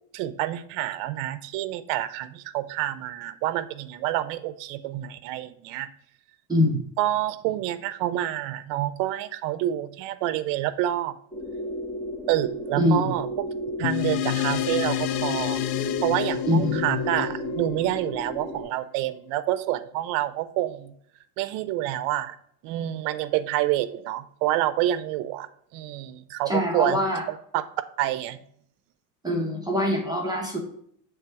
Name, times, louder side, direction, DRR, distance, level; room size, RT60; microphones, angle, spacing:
voice 1, 0.1-5.9 7.0-11.1 12.3-13.3 13.8-20.9 21.4-22.3 22.6-25.5 25.7-27.0 27.3-27.6 28.0-28.4, right 13 dB, 75° right, 14 dB, 0.6 m, -28 dB
voice 2, 6.5-6.8 12.8-13.1 16.5-16.8 26.5-27.2 29.2-30.6, left 1 dB, 10° right, 0 dB, 1.0 m, -23 dB
sound 1, 11.3-18.6, equal, 10° left, 2.0 m, -34 dB
sound 2, 13.8-18.6, left 13 dB, 55° left, 0.5 m, -29 dB
7.2 x 3.4 x 4.6 m, 0.67 s
cardioid pair, 130°, 45 cm